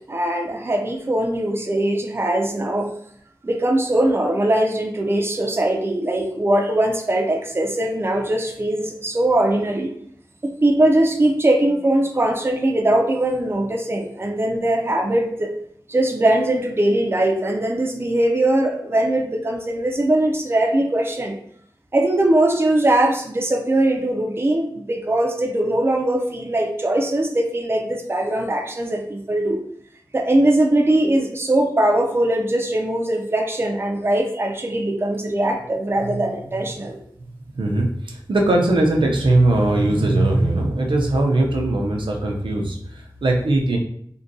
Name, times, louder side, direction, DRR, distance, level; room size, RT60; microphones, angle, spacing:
voice 1, 0.0-2.9 3.4-9.9 10.4-15.5 15.9-21.4 21.9-29.6 30.1-37.0, right 1 dB, 30° right, 2 dB, 0.4 m, -21 dB
voice 2, 37.5-43.8, right 2 dB, 80° right, 1 dB, 0.5 m, -20 dB
3.6 x 2.2 x 2.6 m, 0.67 s
wide cardioid pair, 60°, 8 cm